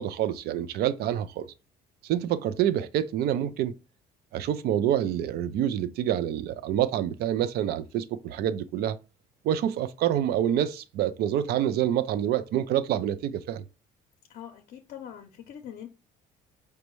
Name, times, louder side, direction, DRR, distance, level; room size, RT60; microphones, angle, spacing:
voice 1, 0.0-1.5 2.0-3.7 4.3-9.0 9.4-13.6, right 11 dB, 70° right, 0.4 m, -27 dB
voice 2, 14.3-15.9, left 9 dB, 65° left, 0.6 m, -43 dB
5.2 x 2.1 x 3.0 m
cardioid pair, 110°, 17 cm